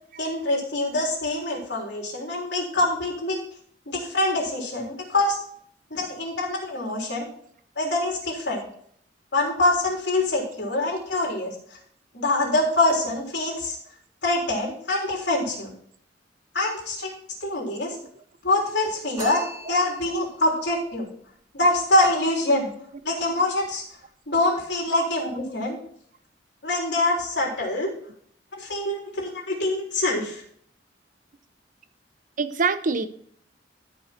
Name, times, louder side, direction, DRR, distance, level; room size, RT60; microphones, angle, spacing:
voice 1, 0.2-3.4 3.9-5.4 5.9-7.3 7.8-8.6 9.3-11.5 12.1-13.8 14.2-15.7 16.5-17.1 17.4-18.0 18.4-19.4 19.7-21.1 21.5-22.7 23.0-23.8 24.3-25.8 26.6-27.9 28.5-30.4, left 2 dB, 70° left, -1 dB, 3.8 m, -25 dB
sound 1, 19.2-20.4, right 1 dB, 20° right, 2.6 m, -37 dB
voice 2, 32.4-33.1, right 4 dB, 50° right, 11 dB, 0.7 m, -24 dB
13.5 x 5.4 x 4.4 m, 0.63 s
head